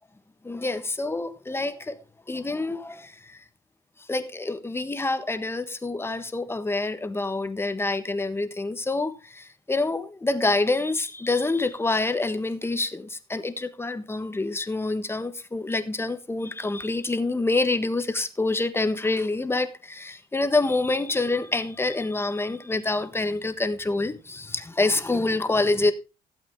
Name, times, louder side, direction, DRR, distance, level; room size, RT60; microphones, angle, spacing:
voice 1, 0.4-2.0 2.3-3.4 4.1-25.9, left 2 dB, 15° left, 1.3 m, -27 dB
16.0 x 8.0 x 3.7 m
cardioid pair, 110°, 17 cm